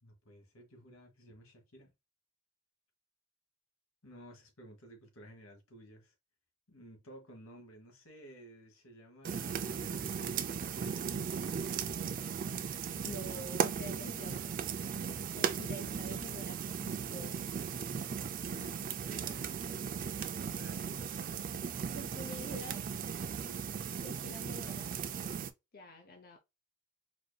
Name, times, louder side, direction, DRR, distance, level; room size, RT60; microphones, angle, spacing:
voice 1, 0.0-1.9 4.0-6.1 6.7-11.2 18.4-21.8, right 1 dB, 85° left, 1.3 m, -55 dB
sound 1, 9.2-25.5, right 7 dB, 40° right, 0.3 m, -37 dB
voice 2, 13.0-14.5 15.3-17.5 21.9-22.8 24.0-24.9 25.7-26.4, left 1 dB, 45° left, 0.6 m, -47 dB
4.3 x 2.6 x 2.3 m
head